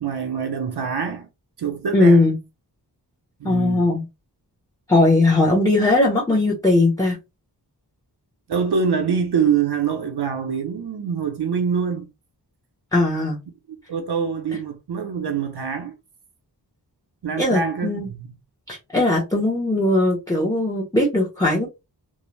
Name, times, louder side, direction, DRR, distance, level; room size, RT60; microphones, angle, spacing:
voice 1, 0.0-1.3 1.6-2.3 3.4-4.0 8.5-12.1 13.7-15.9 17.2-18.3, right 6 dB, 70° right, 0.6 m, -25 dB
voice 2, 1.9-2.4 3.4-4.0 4.9-7.2 12.9-13.4 17.4-18.1 18.7-21.7, left 2 dB, 10° left, 0.7 m, -19 dB
2.5 x 2.0 x 3.1 m
wide cardioid pair, 85°, 42 cm